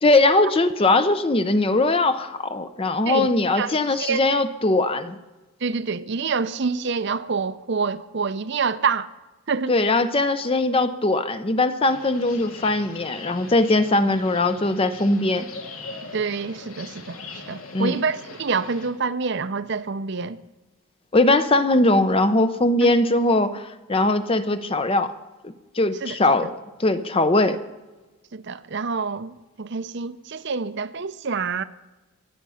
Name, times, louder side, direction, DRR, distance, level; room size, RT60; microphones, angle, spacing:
voice 1, 0.0-5.2 9.7-15.5 17.7-18.0 21.1-25.1 25.4-26.5 26.8-27.6, left 2 dB, 25° left, 0.6 m, -20 dB
voice 2, 3.1-4.2 5.6-9.1 9.5-9.7 16.1-17.2 17.5-20.4 22.8-22.9 26.0-26.2 28.3-31.6, right 5 dB, 55° right, 0.6 m, -27 dB
sound 1, 11.9-18.9, left 3 dB, 80° left, 2.4 m, -41 dB
24.0 x 8.7 x 5.6 m
head